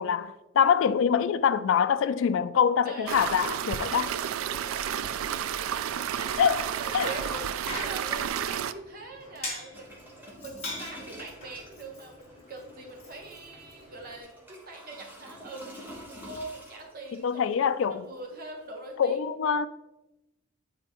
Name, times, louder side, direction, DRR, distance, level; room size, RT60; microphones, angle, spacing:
voice 1, 0.0-4.1 6.4-7.1 17.2-18.1 19.0-19.7, left 7 dB, 65° left, 0.3 m, -25 dB
voice 2, 2.8-3.3 3.9-5.4 6.8-7.4 7.8-15.7 16.1-17.5 17.9-19.2, right 2 dB, 45° right, 1.1 m, -43 dB
sound 1, 3.1-8.7, right 9 dB, 90° right, 0.3 m, -31 dB
Bicycle, 5.9-14.2, left 2 dB, 30° left, 1.5 m, -43 dB
sound 2, 9.7-19.0, equal, 10° right, 1.1 m, -49 dB
9.0 x 4.2 x 3.0 m
head